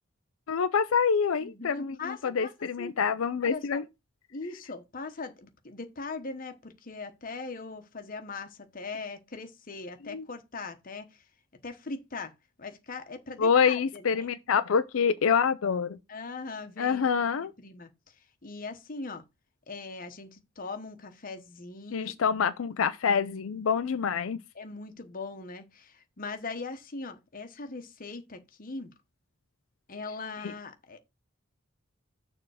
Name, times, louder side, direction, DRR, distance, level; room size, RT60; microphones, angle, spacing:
voice 1, 0.5-3.8 10.1-10.2 13.4-16.0 16.8-17.5 21.9-24.4 30.4-30.5, left 6 dB, 80° left, 0.5 m, -26 dB
voice 2, 1.4-2.5 2.8-3.0 3.4-3.8 4.3-11.2 11.6-12.3 12.6-14.3 16.1-17.9 18.4-19.2 19.7-22.1 24.5-28.9 29.9-31.0, left 3 dB, 45° left, 1.1 m, -40 dB
6.8 x 3.6 x 6.3 m
head